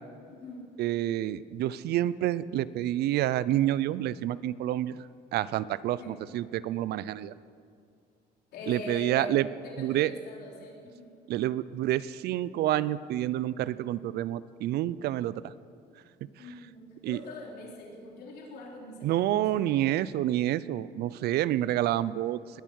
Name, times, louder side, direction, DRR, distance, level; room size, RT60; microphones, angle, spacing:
voice 1, 0.3-0.7 6.0-6.1 8.5-11.1 16.4-19.4 20.0-20.1, left 1 dB, 70° left, -3 dB, 3.8 m, -42 dB
voice 2, 0.8-7.3 8.7-9.5 9.8-10.1 11.3-15.5 17.0-17.2 19.0-22.6, right 13 dB, 70° right, 18 dB, 0.5 m, -28 dB
20.5 x 10.0 x 6.4 m, 2.3 s
cardioid pair, 110°, 17 cm